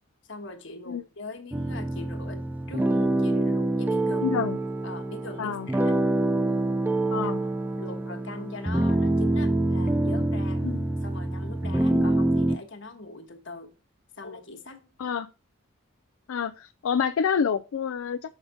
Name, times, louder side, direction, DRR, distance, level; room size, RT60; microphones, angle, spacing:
voice 1, 0.3-4.3 4.8-5.9 7.2-7.5 7.8-10.6 11.0-13.7 14.2-14.9, left 3 dB, 60° left, 1.4 m, -42 dB
sound 1, 1.5-12.6, right 1 dB, 10° right, 0.4 m, -26 dB
voice 2, 4.2-4.6 5.4-5.7 7.1-7.4 10.6-10.9 11.9-12.1 15.0-15.3 16.3-18.4, left 7 dB, 80° left, 0.4 m, -28 dB
6.4 x 5.1 x 4.8 m
head